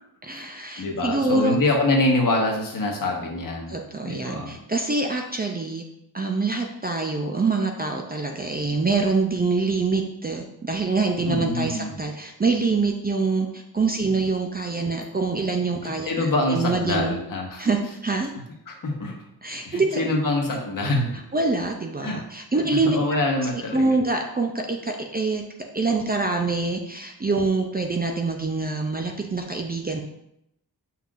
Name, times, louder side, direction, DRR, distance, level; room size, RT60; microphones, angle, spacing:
voice 1, 0.2-1.5 3.7-5.8 6.1-17.1 17.6-18.3 19.4-20.0 21.3-23.0 23.5-25.4 25.7-30.0, right 3 dB, 25° right, 2 dB, 0.5 m, -25 dB
voice 2, 0.8-3.7 4.1-4.6 11.3-11.9 15.8-17.6 18.7-19.1 19.6-21.1 22.0-22.2 22.8-23.9, left 2 dB, 55° left, 0 dB, 1.3 m, -25 dB
7.2 x 5.8 x 2.5 m, 0.80 s
wide cardioid pair, 165°, 40 cm